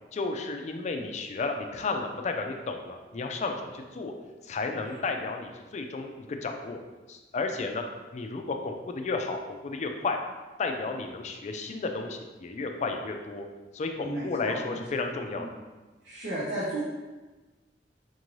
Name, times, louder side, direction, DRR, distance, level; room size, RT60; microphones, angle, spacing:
voice 1, 0.1-4.1 4.4-6.8 7.1-7.8 8.1-10.2 10.6-13.5 13.7-15.5, left 3 dB, 40° left, 4 dB, 0.4 m, -32 dB
voice 2, 14.0-15.0 15.4-15.6 16.0-16.8, right 1 dB, 80° right, -11 dB, 1.0 m, -34 dB
4.4 x 2.6 x 3.1 m, 1.2 s
head